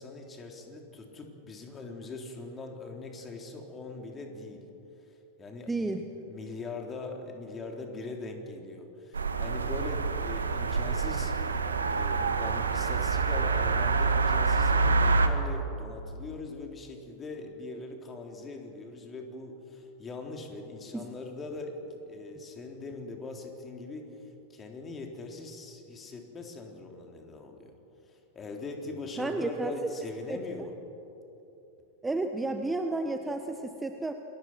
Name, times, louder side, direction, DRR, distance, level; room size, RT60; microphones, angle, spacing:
voice 1, 0.0-4.6 5.4-24.1 24.5-27.7 28.1-30.7, left 3 dB, 20° left, 2 dB, 3.7 m, -41 dB
voice 2, 5.7-6.0 20.9-21.1 29.2-29.9 30.3-30.4 32.0-34.1, right 2 dB, 10° right, 6 dB, 1.2 m, -31 dB
sound 1, 9.1-15.3, right 4 dB, 75° right, 1.6 m, -26 dB
29.5 x 22.5 x 6.1 m, 3.0 s
figure-of-eight pair, 90°, 0 cm